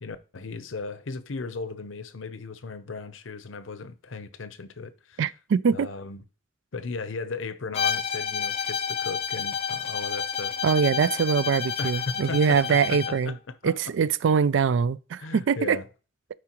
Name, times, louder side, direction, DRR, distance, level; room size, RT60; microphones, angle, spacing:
voice 1, 0.0-5.2 5.7-6.2 6.7-10.6 11.8-13.7 15.2-15.9, left 4 dB, 85° left, 0.7 m, -36 dB
voice 2, 5.2-5.9 10.6-13.3 13.6-15.8, right 6 dB, 75° right, 0.3 m, -23 dB
Bowed string instrument, 7.7-13.2, left 7 dB, 30° left, 0.5 m, -30 dB
12.0 x 4.9 x 3.0 m
head